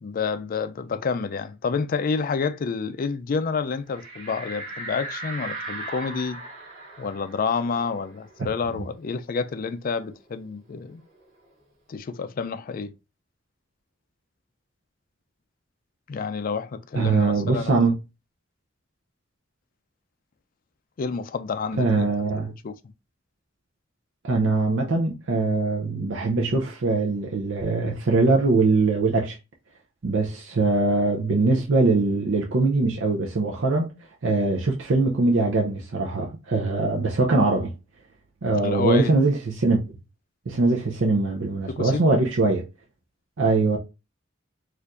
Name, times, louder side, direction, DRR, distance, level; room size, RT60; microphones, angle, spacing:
voice 1, 0.0-6.4 7.0-11.0 11.9-12.9 16.1-17.8 21.0-22.1 22.6-22.7 38.5-39.1 41.7-42.2, left 5 dB, 45° left, 0.4 m, -29 dB
sound 1, 3.9-9.1 9.5-9.6 9.9-11.6, right 2 dB, 35° right, 1.6 m, -38 dB
voice 2, 16.9-17.9 21.8-22.5 24.2-29.4 30.0-33.9 34.2-37.7 38.4-39.8 40.5-42.6 43.4-43.8, right 3 dB, 70° right, 0.6 m, -22 dB
4.4 x 2.5 x 2.4 m
head